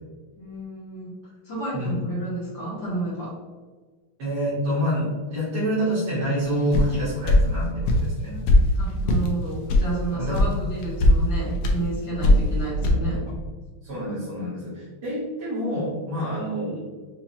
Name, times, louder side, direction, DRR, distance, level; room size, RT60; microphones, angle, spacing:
voice 1, 0.4-3.4 8.3-13.2, right 2 dB, 60° left, -8 dB, 2.0 m, -31 dB
voice 2, 1.7-2.1 4.2-8.4 10.2-10.6 12.2-12.4 13.8-16.8, equal, 80° right, -12 dB, 2.6 m, -27 dB
sound 1, 6.7-6.9 7.3-7.4 7.9-8.1 8.5-8.6 9.1-9.3 9.7-9.9 10.3-10.5 10.8-11.1 11.6-11.8 12.2-12.5 12.8-12.9, left 2 dB, 85° left, 1.7 m, -17 dB
5.9 x 2.9 x 2.9 m, 1.4 s
omnidirectional pair, 2.4 m